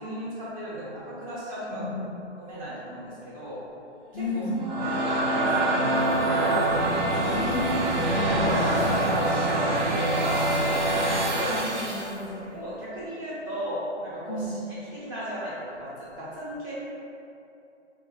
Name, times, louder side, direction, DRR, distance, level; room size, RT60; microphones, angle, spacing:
voice 1, 0.0-1.8 2.4-3.6 4.1-4.2 4.8-6.6 7.1-7.6 8.3-10.6 11.2-11.6 12.0-12.1 12.5-14.6 14.9-16.7, equal, 20° right, -10 dB, 0.9 m, -35 dB
voice 2, 1.8-2.1 4.1-4.7 7.2-8.0 11.4-12.5 14.3-14.7, left 1 dB, 50° left, -1 dB, 0.4 m, -33 dB
sound 1, 4.4-12.1, right 1 dB, 40° right, 0.6 m, -25 dB
5.7 x 2.1 x 2.7 m, 2.7 s
hypercardioid pair, 150°, 35 cm